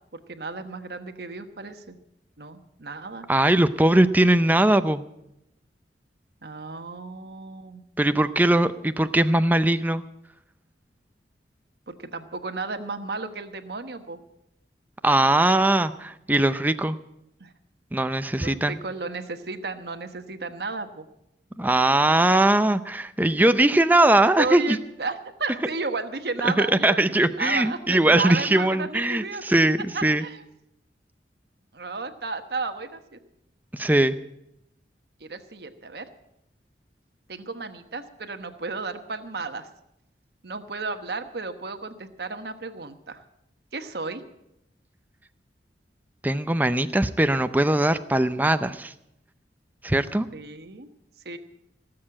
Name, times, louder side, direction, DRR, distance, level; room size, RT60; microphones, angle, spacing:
voice 1, 0.3-1.9 2.4-3.3 6.4-7.8 11.9-14.2 17.4-17.5 18.4-21.0 24.4-29.4 29.9-30.4 31.7-33.2 35.2-36.1 37.3-39.7 40.4-43.2 43.7-44.2 50.3-50.9 51.2-51.4, right 4 dB, 65° right, 8 dB, 1.1 m, -33 dB
voice 2, 3.3-5.0 8.0-10.0 15.0-17.0 17.9-18.8 21.6-24.8 26.4-30.2 33.7-34.2 46.2-48.9 49.8-50.3, right 1 dB, 10° right, 11 dB, 0.5 m, -20 dB
18.0 x 7.6 x 8.7 m, 0.83 s
head